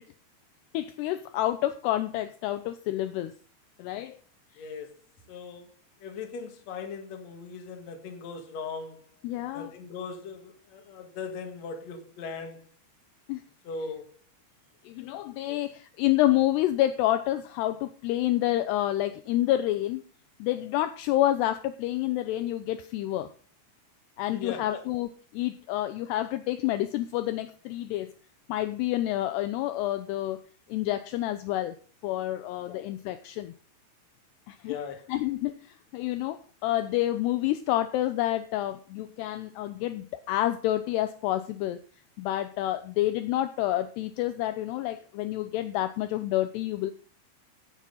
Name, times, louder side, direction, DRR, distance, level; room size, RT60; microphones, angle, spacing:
voice 1, 0.7-3.3 3.8-4.2 9.2-9.7 13.3-13.4 14.9-20.0 20.4-23.3 24.2-28.1 28.5-30.4 30.7-31.8 32.0-33.5 34.5-34.8 35.1-41.8 42.2-46.9, left 14 dB, 80° left, 2.6 m, -28 dB
voice 2, 4.6-4.9 5.3-5.7 6.0-9.1 9.5-12.6 13.6-14.1 15.5-15.6 24.3-24.8 32.7-32.9 34.7-35.1, left 5 dB, 50° left, 2.4 m, -39 dB
15.5 x 7.6 x 4.0 m
omnidirectional pair, 5.1 m